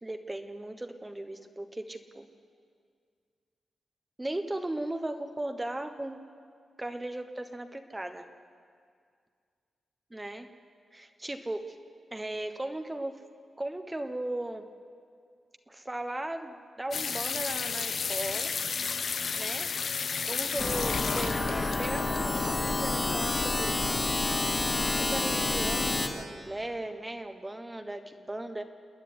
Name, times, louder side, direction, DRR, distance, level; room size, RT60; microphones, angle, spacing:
voice 1, 0.0-2.3 4.2-6.2 6.8-8.3 10.1-10.5 10.9-11.8 12.1-13.2 13.6-14.7 15.7-18.5 19.3-19.8 20.2-23.7 25.0-28.6, right 1 dB, 15° right, 7 dB, 1.1 m, -37 dB
sound 1, 16.9-24.1, left 5 dB, 60° left, 0.9 m, -33 dB
sound 2, 20.6-26.1, left 2 dB, 35° left, 2.4 m, -29 dB
27.5 x 9.9 x 9.7 m, 2.2 s
cardioid pair, 100°, 0 cm